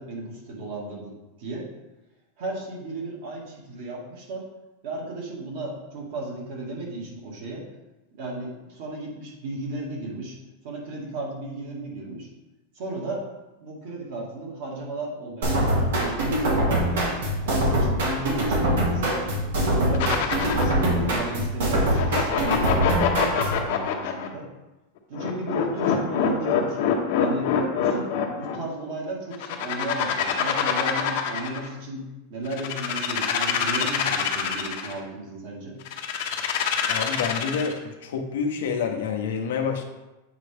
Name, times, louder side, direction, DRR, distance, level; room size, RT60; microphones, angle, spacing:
voice 1, 0.0-1.7 2.4-4.4 4.8-7.6 8.1-10.4 10.6-12.3 12.7-13.2 13.6-17.1 17.4-19.2 19.5-24.5 25.1-26.8 27.2-27.5 27.8-28.1 28.3-32.0 32.3-35.8, right 2 dB, 50° right, -2 dB, 2.0 m, -34 dB
sound 1, 15.4-23.6, right 1 dB, 80° right, 2.1 m, -23 dB
sound 2, 19.9-20.8 21.8-24.3 25.1-28.6 29.3-31.7 32.5-34.9 35.9-37.8, left 8 dB, 50° left, 0.9 m, -25 dB
voice 2, 36.9-39.8, left 6 dB, 80° left, 3 dB, 1.0 m, -28 dB
8.2 x 4.7 x 3.5 m, 1.0 s
supercardioid pair, 175°, 0 cm